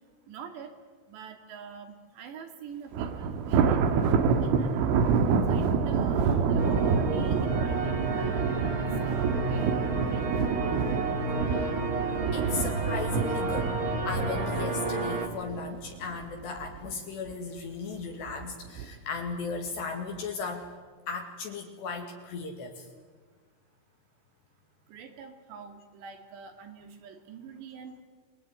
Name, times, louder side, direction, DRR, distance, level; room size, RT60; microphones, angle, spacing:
voice 1, 0.3-0.7 1.1-4.1 4.4-5.0 5.5-10.2 24.9-28.0, right 6 dB, 65° right, 6 dB, 4.4 m, -46 dB
Thunder, 2.9-16.2 16.6-16.9 17.3-17.4 18.3-18.8, right 5 dB, 80° right, 4.1 m, -27 dB
sound 1, 6.6-15.3, right 3 dB, 25° right, 2.4 m, -31 dB
voice 2, 12.3-13.8 14.1-20.7 21.1-22.9, left 4 dB, 60° left, 2 dB, 4.1 m, -36 dB
28.0 x 21.0 x 9.5 m, 1.5 s
omnidirectional pair, 5.7 m